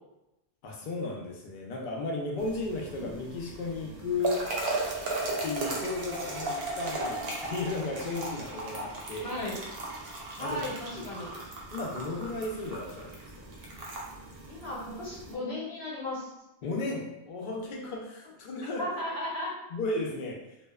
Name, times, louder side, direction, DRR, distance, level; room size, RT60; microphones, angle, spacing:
voice 1, 0.6-4.5 5.4-9.4 10.4-10.6 10.9-11.0 11.7-13.2 16.6-18.9 19.7-20.4, left 2 dB, 60° left, -1 dB, 0.7 m, -34 dB
sound 1, 2.4-15.3, right 2 dB, 75° right, 0.8 m, -37 dB
voice 2, 9.2-9.6 10.4-11.3 14.5-16.3 18.8-19.5, left 1 dB, 85° left, -6 dB, 1.1 m, -35 dB
2.6 x 2.1 x 2.3 m, 0.91 s
omnidirectional pair, 1.0 m